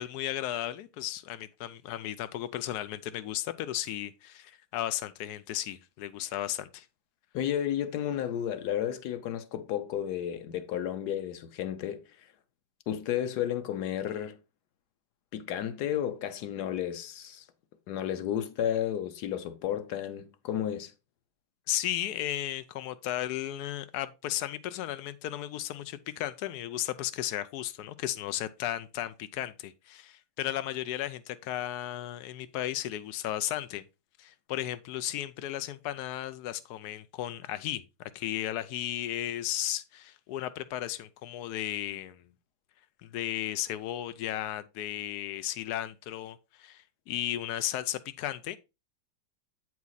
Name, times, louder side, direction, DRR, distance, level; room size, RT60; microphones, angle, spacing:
voice 1, 0.0-6.9 21.7-33.8 34.2-37.8 38.1-42.2 43.0-48.6, left 13 dB, 85° left, 0.8 m, -35 dB
voice 2, 7.3-12.0 12.9-14.4 15.3-17.4 17.9-20.9, left 10 dB, 65° left, 1.1 m, -32 dB
8.2 x 4.8 x 3.9 m
omnidirectional pair, 2.2 m